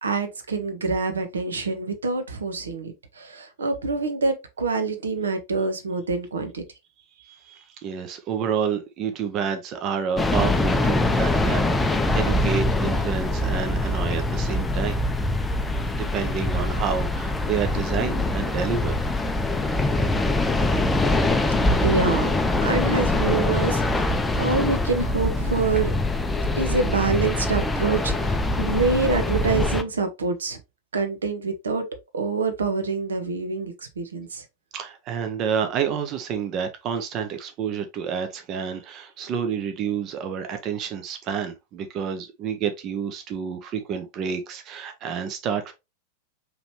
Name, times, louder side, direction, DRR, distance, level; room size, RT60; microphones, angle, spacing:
voice 1, 0.0-6.6 21.8-22.3 22.6-25.9 26.6-30.6 30.9-31.9 32.1-34.4, right 4 dB, 70° right, 0.8 m, -26 dB
voice 2, 7.2-15.0 15.9-18.9 34.7-45.7, right 7 dB, 35° right, 0.7 m, -29 dB
sound 1, 10.2-29.8, left 2 dB, 10° left, 0.5 m, -23 dB
5.0 x 3.2 x 2.9 m
figure-of-eight pair, 90°, 0 cm